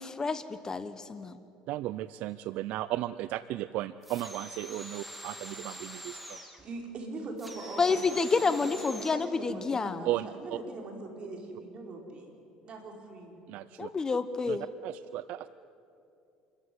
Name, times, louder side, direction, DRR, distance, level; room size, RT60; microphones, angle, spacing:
voice 1, 0.0-1.4 7.8-10.1 13.8-14.6, left 4 dB, 25° left, 12 dB, 1.0 m, -29 dB
voice 2, 1.7-6.4 10.0-10.6 13.5-13.9 14.5-14.6 14.8-15.5, right 15 dB, 70° right, 15 dB, 0.5 m, -35 dB
sound 1, 4.0-6.6 7.4-9.3, equal, ahead, 3.1 m, -44 dB
voice 3, 6.3-8.1 8.4-12.3 12.6-13.4, right 2 dB, 45° right, 1 dB, 5.2 m, -42 dB
27.5 x 14.5 x 9.6 m, 2.6 s
supercardioid pair, 100°, 2 cm